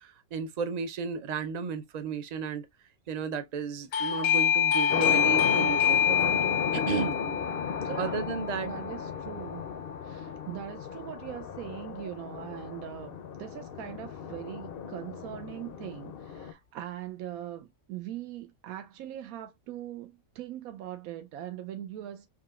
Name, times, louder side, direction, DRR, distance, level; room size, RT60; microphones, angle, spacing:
voice 1, 0.0-2.7 3.1-6.3 6.7-7.2 8.0-8.7, right 6 dB, 55° right, 0.4 m, -33 dB
Doorbell, 3.9-10.4, left 8 dB, 75° left, 1.0 m, -27 dB
sound 1, 4.9-16.5, left 7 dB, 60° left, 0.6 m, -36 dB
voice 2, 7.8-8.3 8.6-9.6 10.0-22.3, right 11 dB, 85° right, 1.0 m, -41 dB
4.9 x 2.8 x 2.2 m
omnidirectional pair, 1.5 m